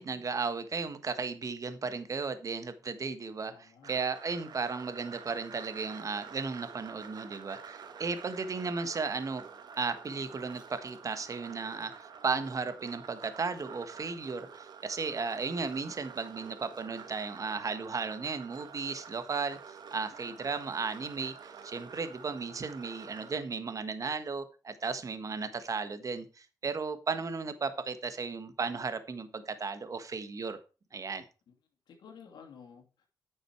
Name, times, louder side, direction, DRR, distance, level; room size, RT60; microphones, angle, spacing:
voice 1, 0.0-9.4 9.8-30.6 30.9-31.2, right 4 dB, 50° right, 11 dB, 1.4 m, -35 dB
voice 2, 3.5-4.0 31.5-31.6 31.9-33.1, left 6 dB, 80° left, 3 dB, 2.6 m, -53 dB
sound 1, 3.8-23.4, right 6 dB, 70° right, 1.3 m, -49 dB
9.7 x 6.4 x 4.6 m, 0.34 s
cardioid pair, 60°, 8 cm